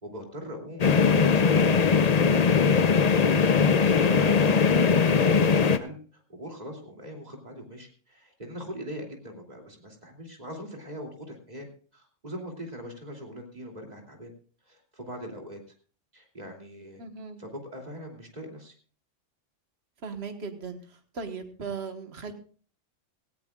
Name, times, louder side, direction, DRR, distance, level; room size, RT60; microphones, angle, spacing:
voice 1, 0.0-2.9 3.3-11.7 11.9-14.3 14.6-15.6 16.1-17.0 17.4-18.7, equal, 35° right, 1 dB, 3.0 m, -41 dB
sound 1, 0.8-5.8, left 5 dB, 40° left, 0.7 m, -20 dB
voice 2, 17.0-17.4 20.0-22.3, right 5 dB, 60° right, 6 dB, 1.7 m, -38 dB
17.5 x 16.5 x 2.4 m, 0.42 s
omnidirectional pair, 1.3 m